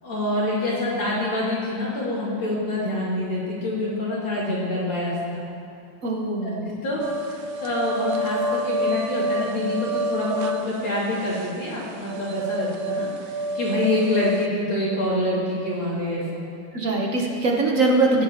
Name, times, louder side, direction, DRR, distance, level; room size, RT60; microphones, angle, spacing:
voice 1, 0.0-5.4 6.8-16.4, left 1 dB, 85° left, -8 dB, 3.5 m, -26 dB
voice 2, 6.0-6.7 16.7-18.2, right 2 dB, 50° right, -1 dB, 1.3 m, -22 dB
sound 1, 7.0-14.5, equal, 65° right, 1.0 m, -28 dB
19.0 x 7.9 x 3.0 m, 2.6 s
omnidirectional pair, 2.0 m